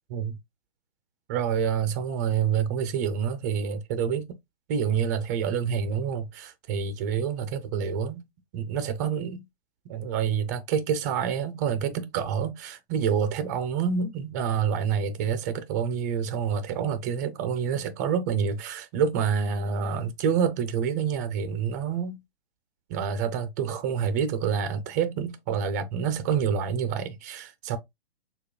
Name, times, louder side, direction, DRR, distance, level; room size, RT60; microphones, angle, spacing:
voice 1, 1.3-4.3 4.7-8.2 8.5-9.4 9.9-22.2 22.9-27.8, right 7 dB, 15° right, 0.4 m, -27 dB
6.5 x 2.3 x 2.2 m
figure-of-eight pair, 125°, 33 cm